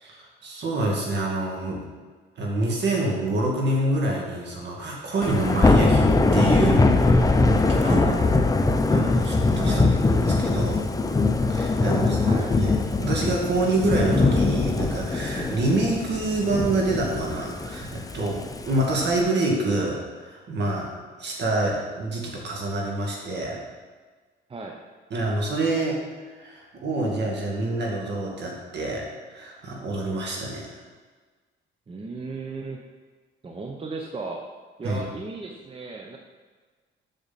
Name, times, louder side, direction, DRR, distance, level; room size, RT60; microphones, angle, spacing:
voice 1, 0.4-1.8 2.4-8.0 8.9-10.9 11.5-12.2 12.5-12.7 13.0-20.9 21.2-23.6 25.1-26.0 26.4-30.7 34.8-35.0, right 2 dB, 60° right, -1 dB, 2.2 m, -26 dB
Thunder / Rain, 5.2-19.2, left 3 dB, 20° left, 0.6 m, -22 dB
voice 2, 7.8-8.5 9.6-10.3 11.7-12.5 24.5-24.8 31.9-32.8 33.4-34.4 34.8-36.2, right 3 dB, 30° right, 1 dB, 0.8 m, -35 dB
7.2 x 6.8 x 4.2 m, 1.4 s
cardioid pair, 90°, 20 cm